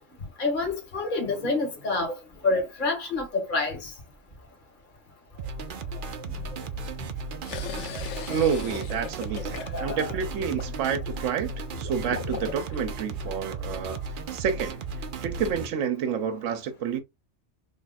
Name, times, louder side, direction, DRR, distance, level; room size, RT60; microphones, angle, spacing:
voice 1, 0.4-2.1 2.4-3.9 7.9-8.0 9.6-10.1, left 3 dB, 40° left, 1.4 m, -28 dB
sound 1, 5.4-15.7, right 4 dB, 55° right, 0.6 m, -35 dB
sound 2, 7.5-12.8, left 7 dB, 70° left, 1.0 m, -39 dB
voice 2, 8.3-14.0 14.3-14.8 15.2-17.0, right 7 dB, 80° right, 1.0 m, -29 dB
3.5 x 2.3 x 4.0 m
omnidirectional pair, 1.3 m